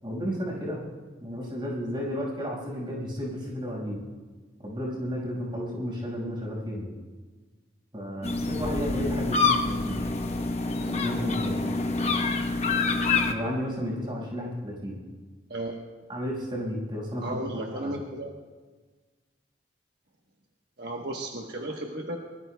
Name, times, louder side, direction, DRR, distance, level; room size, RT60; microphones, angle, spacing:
voice 1, 0.0-0.8 1.2-4.0 4.6-6.9 7.9-10.0 10.8-11.8 13.3-15.0 16.1-17.9, equal, 25° right, -4 dB, 5.5 m, -33 dB
sound 1, 8.2-13.3, left 3 dB, 35° left, 1.0 m, -26 dB
voice 2, 15.5-15.8 17.2-18.3 20.8-22.2, right 1 dB, 60° right, 0 dB, 1.2 m, -34 dB
23.5 x 20.5 x 2.3 m, 1.4 s
head